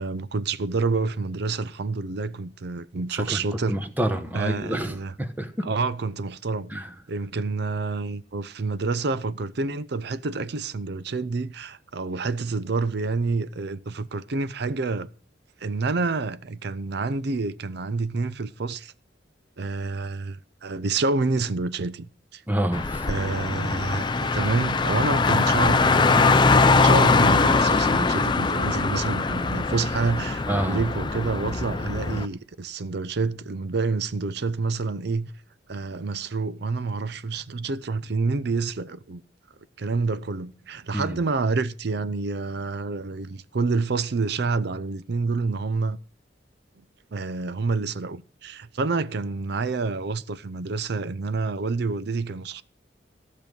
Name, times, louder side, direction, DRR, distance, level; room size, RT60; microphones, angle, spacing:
voice 1, 0.0-3.9 4.3-5.1 5.6-6.8 7.1-15.1 15.6-18.9 19.6-22.4 23.1-35.3 35.7-39.2 39.8-46.0 47.1-52.6, right 3 dB, 60° right, 0.6 m, -28 dB
voice 2, 3.1-5.7 6.7-6.9 22.5-23.1 30.5-30.8 40.9-41.2, right 1 dB, 10° right, 1.1 m, -28 dB
Car, 22.7-32.3, left 4 dB, 25° left, 0.5 m, -22 dB
14.5 x 6.4 x 5.2 m
head